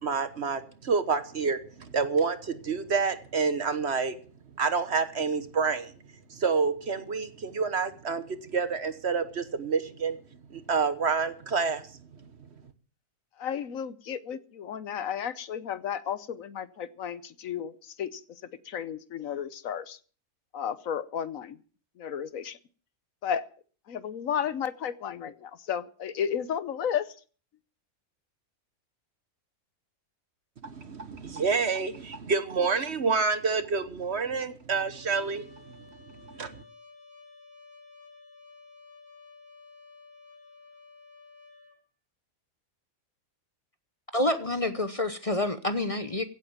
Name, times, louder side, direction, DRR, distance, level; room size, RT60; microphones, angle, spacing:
voice 1, 0.0-4.2 4.6-5.9 6.3-10.2 10.5-11.9 30.6-35.5 36.3-36.6, right 5 dB, 50° right, 1.3 m, -28 dB
voice 2, 13.4-20.0 20.5-21.6 22.0-22.6 23.2-23.5 23.9-27.1, left 8 dB, 70° left, 1.2 m, -33 dB
Trumpet, 34.9-41.8, left 4 dB, 10° right, 3.6 m, -53 dB
voice 3, 44.1-46.2, left 1 dB, 30° left, 0.9 m, -28 dB
16.0 x 8.8 x 7.3 m
omnidirectional pair, 1.5 m